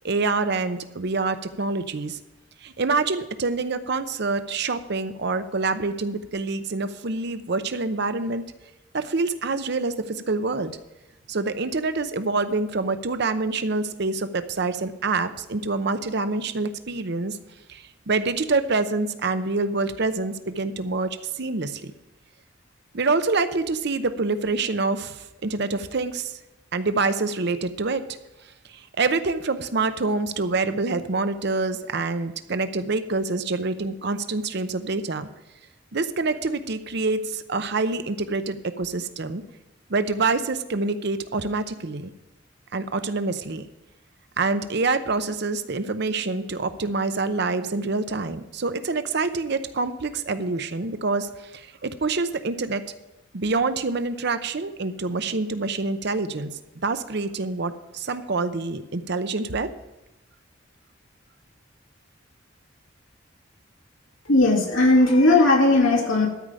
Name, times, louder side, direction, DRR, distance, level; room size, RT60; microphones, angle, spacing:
voice 1, 0.0-2.2 2.6-8.4 8.9-10.8 11.3-17.4 17.7-21.9 22.9-26.4 26.7-28.0 28.7-35.3 35.9-39.4 39.9-42.1 42.7-43.6 44.4-52.8 53.3-59.7, right 3 dB, 55° right, 11 dB, 0.7 m, -26 dB
voice 2, 64.3-66.3, left 2 dB, 90° left, 0 dB, 2.3 m, -17 dB
13.0 x 5.0 x 8.8 m, 0.98 s
head